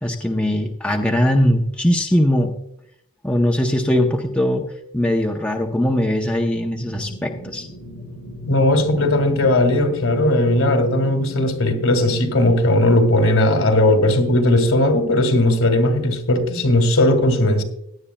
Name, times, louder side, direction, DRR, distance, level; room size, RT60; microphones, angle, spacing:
voice 1, 0.0-2.6 3.2-4.7 4.9-7.7, equal, 5° left, 0.7 m, -20 dB
sound 1, 6.8-12.3, left 2 dB, 40° left, 3.9 m, -35 dB
voice 2, 8.4-17.6, left 1 dB, 65° left, 2.1 m, -17 dB
17.0 x 11.0 x 2.3 m
head